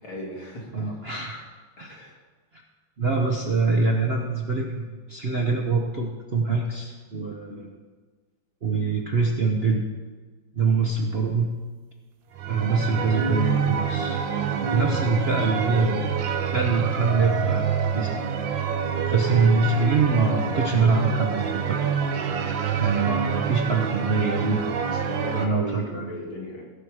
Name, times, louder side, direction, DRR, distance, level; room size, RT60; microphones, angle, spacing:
voice 1, 0.0-0.9 1.8-2.1 7.5-7.7 24.8-26.6, left 1 dB, 80° left, -4 dB, 3.1 m, -37 dB
voice 2, 0.7-1.4 1.8-2.0 3.0-7.7 8.6-9.8 10.5-11.5 12.5-14.2 14.6-16.0 16.5-18.3 19.1-21.8 22.8-24.6 25.3-26.1, right 4 dB, 45° right, 0 dB, 0.8 m, -24 dB
sound 1, 12.3-25.5, right 7 dB, 70° right, 1.6 m, -27 dB
17.0 x 5.8 x 4.8 m, 1.4 s
omnidirectional pair, 2.2 m